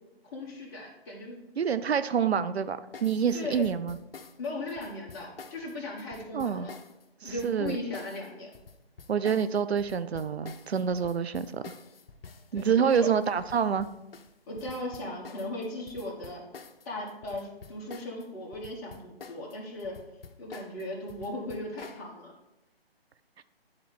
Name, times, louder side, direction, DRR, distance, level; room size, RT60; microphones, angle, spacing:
voice 1, 0.2-1.4 3.3-3.7 4.4-6.8 7.2-8.5 12.5-13.1 14.5-16.4 16.8-20.0 20.4-22.3, left 1 dB, 20° left, -3 dB, 1.5 m, -37 dB
voice 2, 1.6-4.0 6.3-6.7 7.2-7.8 9.1-11.6 12.5-13.9 23.4-23.5, right 7 dB, 85° right, 13 dB, 0.5 m, -27 dB
sound 1, 2.9-18.3 18.5-22.0, left 5 dB, 65° left, 0.7 m, -48 dB
9.6 x 4.2 x 4.2 m, 0.91 s
figure-of-eight pair, 145°, 31 cm